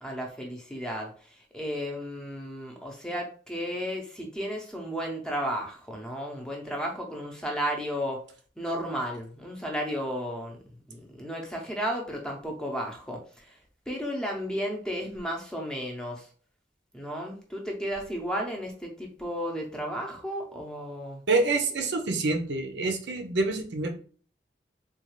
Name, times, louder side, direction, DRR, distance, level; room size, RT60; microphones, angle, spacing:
voice 1, 0.0-8.2 8.6-10.6 10.9-13.6 13.9-16.3 16.9-21.2, equal, 5° left, 0 dB, 0.6 m, -33 dB
voice 2, 21.3-23.9, right 3 dB, 90° right, 5 dB, 0.7 m, -27 dB
3.8 x 2.4 x 3.0 m, 0.42 s
head